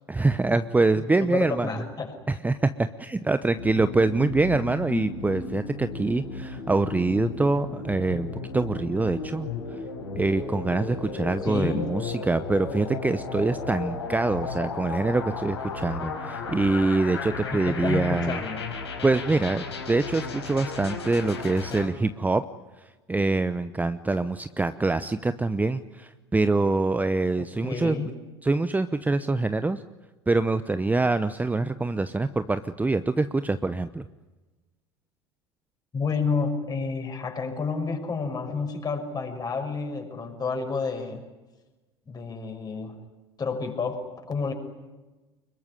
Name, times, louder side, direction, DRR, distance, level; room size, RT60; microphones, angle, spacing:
voice 1, 0.1-1.7 2.3-8.3 8.5-9.8 10.2-18.4 19.0-22.4 23.1-28.0 28.4-29.8 30.3-34.0, right 3 dB, 10° right, 12 dB, 0.9 m, -25 dB
voice 2, 1.2-2.1 11.4-11.9 17.5-18.7 27.4-28.1 35.9-41.2 42.1-43.0 43.4-44.0 44.3-44.5, left 4 dB, 30° left, 4 dB, 6.4 m, -30 dB
sound 1, 3.6-21.9, left 4 dB, 85° left, 5.1 m, -34 dB
25.0 x 22.5 x 9.9 m, 1.2 s
hypercardioid pair, 75°, 14 cm